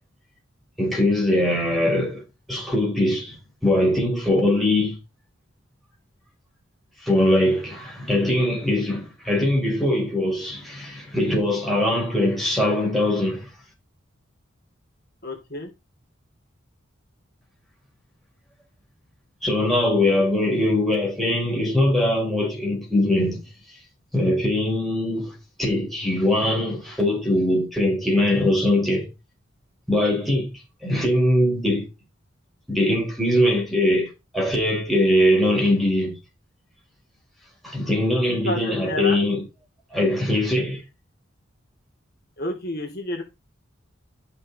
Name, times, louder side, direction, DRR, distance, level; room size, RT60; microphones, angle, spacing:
voice 1, 0.8-2.2 2.5-3.4 3.6-5.0 7.0-13.5 19.4-23.4 24.1-25.3 25.6-29.1 29.9-31.9 32.7-34.1 34.3-36.2 37.6-39.4 39.9-40.8, left 1 dB, ahead, 5.2 m, -21 dB
voice 2, 15.2-15.7 38.3-39.2 42.4-43.2, left 1 dB, 55° left, 2.8 m, -30 dB
13.5 x 6.0 x 4.2 m
head